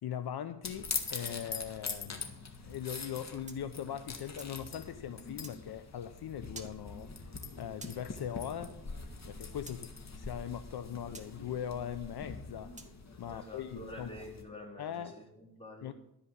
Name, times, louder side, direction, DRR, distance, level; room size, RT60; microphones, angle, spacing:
voice 1, 0.0-8.8 9.3-12.7 13.2-14.1 14.8-15.2 15.8-15.9, left 9 dB, 70° left, 0.8 m, -40 dB
sound 1, 0.6-14.4, left 4 dB, 40° left, 1.9 m, -43 dB
sound 2, 3.5-4.6 5.4-5.6 6.5-6.8 7.8-8.0 9.7-9.8 11.1-11.3 12.8-13.0, right 3 dB, 20° right, 1.7 m, -49 dB
voice 2, 13.2-15.9, left 1 dB, 15° left, 4.0 m, -48 dB
13.0 x 5.2 x 8.5 m
cardioid pair, 70°, 40 cm